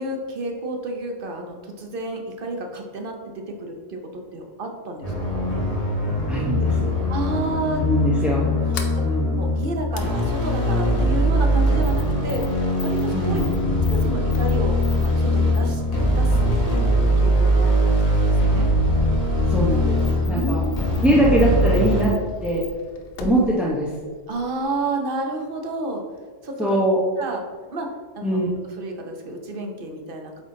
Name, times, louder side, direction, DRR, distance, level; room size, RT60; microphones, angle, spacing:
voice 1, 0.0-5.5 7.1-7.8 9.4-12.5 12.8-13.4 13.9-15.8 16.2-18.7 20.3-21.2 24.3-26.0 26.4-26.8 27.2-27.4 27.7-30.4, right 2 dB, 50° right, 3 dB, 0.9 m, -31 dB
sound 1, 5.0-22.0, equal, 30° left, 1.5 m, -21 dB
voice 2, 6.3-6.9 7.8-8.5 9.0-9.4 13.1-13.5 19.5-20.6 21.0-22.6 23.2-23.9 26.6-27.0 28.2-28.5, right 1 dB, ahead, -6 dB, 0.6 m, -22 dB
Sliding door, 8.4-24.8, left 3 dB, 55° left, 0.8 m, -40 dB
8.1 x 3.8 x 3.7 m, 1.5 s
omnidirectional pair, 1.3 m